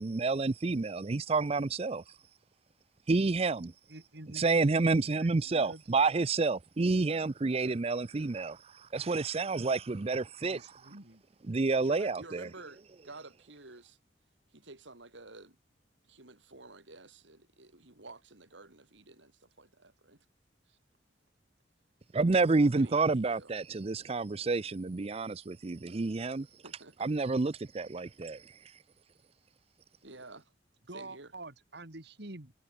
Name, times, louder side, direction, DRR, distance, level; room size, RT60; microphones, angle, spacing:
voice 1, 0.0-2.2 3.1-3.8 4.3-11.0 11.4-12.5 22.1-26.6 27.0-28.8, right 3 dB, 35° right, 0.5 m, -29 dB
voice 2, 3.9-4.4 5.2-5.8 10.4-11.2 30.9-32.5, right 2 dB, 60° right, 2.8 m, -47 dB
voice 3, 11.8-14.0 14.5-15.6 16.1-20.3 20.7-20.8 22.7-23.5 26.6-27.1 30.0-30.5 30.9-31.3, right 2 dB, 80° right, 4.4 m, -51 dB
head